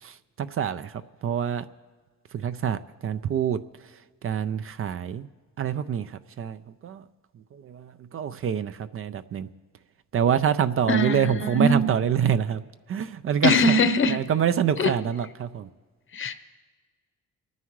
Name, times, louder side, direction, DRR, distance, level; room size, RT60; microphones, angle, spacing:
voice 1, 0.0-1.7 2.3-3.6 4.2-5.3 5.6-7.1 7.5-9.5 10.1-12.6 12.9-13.8 14.1-15.7, right 8 dB, 45° right, 12 dB, 0.5 m, -26 dB
voice 2, 10.9-11.9 13.4-14.2 14.8-14.9 16.1-16.3, left 2 dB, 45° left, 10 dB, 1.0 m, -21 dB
28.0 x 9.5 x 3.2 m, 1.5 s
cardioid pair, 90°, 30 cm